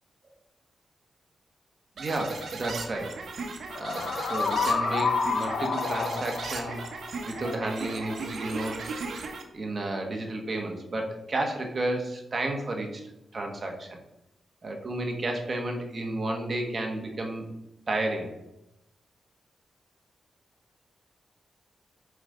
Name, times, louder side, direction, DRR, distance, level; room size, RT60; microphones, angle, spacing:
voice 1, 2.0-3.2 3.8-6.8 7.2-8.9 9.5-13.0 13.3-14.0 14.6-17.5 17.9-18.3, right 2 dB, 35° right, 2 dB, 1.3 m, -32 dB
sound 1, 2.0-9.4, right 4 dB, 65° right, 1.0 m, -37 dB
sound 2, 2.3-2.5 3.7-8.3, left 5 dB, 75° left, 0.8 m, -30 dB
7.1 x 4.2 x 5.0 m, 0.86 s
wide cardioid pair, 140°, 0 cm